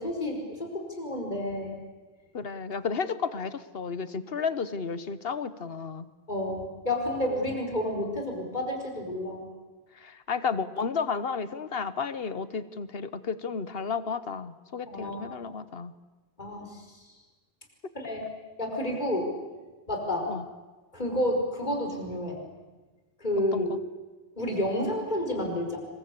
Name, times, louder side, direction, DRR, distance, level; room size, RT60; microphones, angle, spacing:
voice 1, 0.0-1.8 6.3-9.5 14.9-15.2 16.4-16.8 17.9-18.2 18.6-19.3 19.9-20.3 20.9-22.4 23.2-23.7 24.4-25.8, left 1 dB, 45° left, 2 dB, 5.2 m, -30 dB
voice 2, 2.3-6.1 9.9-15.9 20.3-20.4 23.5-23.8, left 5 dB, 70° left, 14 dB, 1.4 m, -32 dB
27.5 x 22.5 x 8.4 m, 1.2 s
omnidirectional pair, 1.0 m